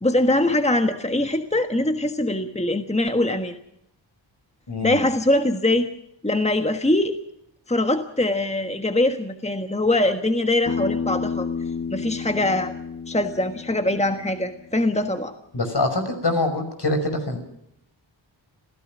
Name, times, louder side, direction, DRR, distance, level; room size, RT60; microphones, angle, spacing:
voice 1, 0.0-3.5 4.8-5.9 6.2-7.2 7.7-11.5 11.9-12.7 13.1-15.3, left 1 dB, 15° left, 7 dB, 1.4 m, -22 dB
voice 2, 4.7-5.0 15.5-17.4, left 2 dB, 60° left, 6 dB, 5.7 m, -24 dB
Bass guitar, 10.7-14.9, left 5 dB, 35° left, 1.1 m, -31 dB
27.5 x 16.0 x 6.2 m, 0.78 s
wide cardioid pair, 85°, 47 cm